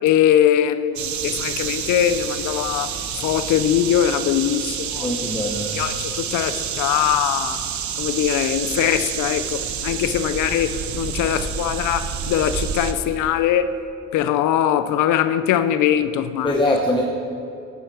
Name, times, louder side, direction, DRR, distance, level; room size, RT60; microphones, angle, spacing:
voice 1, 0.0-2.9 3.2-5.1 5.7-7.6 8.0-13.7 14.1-16.8, left 10 dB, 80° left, 0.5 m, -21 dB
sound 1, 1.0-12.9, right 8 dB, 70° right, 0.9 m, -28 dB
voice 2, 5.0-5.7 16.4-17.0, equal, 15° left, 1.0 m, -22 dB
10.0 x 9.2 x 4.7 m
cardioid pair, 90°, 30 cm